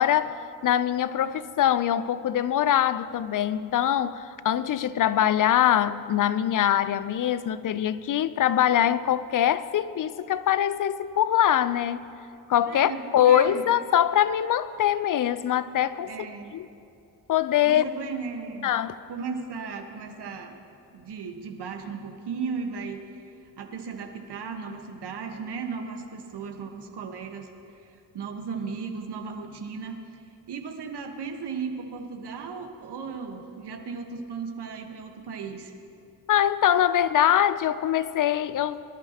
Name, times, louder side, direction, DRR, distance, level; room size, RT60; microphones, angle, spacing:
voice 1, 0.0-12.1 12.5-16.1 16.5-16.7 17.3-17.8 18.6-19.0 36.3-38.8, left 10 dB, 45° left, 0.6 m, -23 dB
voice 2, 12.7-13.6 16.1-16.5 17.6-18.7 19.1-20.6 20.9-23.3 23.6-27.9 28.1-30.0 30.5-35.7, right 5 dB, 60° right, 1.4 m, -36 dB
23.5 x 11.5 x 2.9 m
hypercardioid pair, 45°, 46 cm